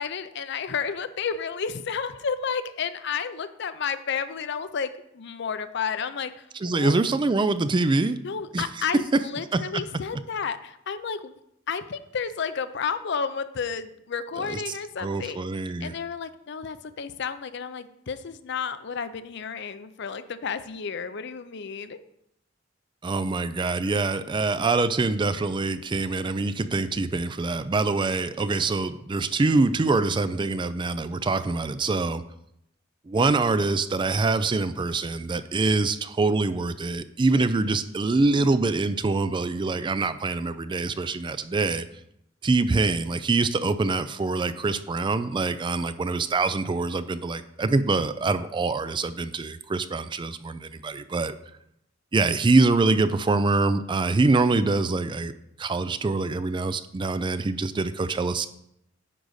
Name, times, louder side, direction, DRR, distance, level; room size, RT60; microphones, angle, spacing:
voice 1, 0.0-6.9 8.2-11.4 11.7-15.4 15.8-22.0, left 6 dB, 60° left, 12 dB, 0.5 m, -31 dB
voice 2, 6.6-8.2 8.5-8.6 9.5-9.6 14.5-14.6 15.0-15.9 23.0-32.2 33.1-41.8 42.4-51.4 52.1-55.3 55.6-58.5, right 3 dB, 25° right, 13 dB, 0.4 m, -24 dB
9.9 x 4.0 x 6.4 m, 0.78 s
head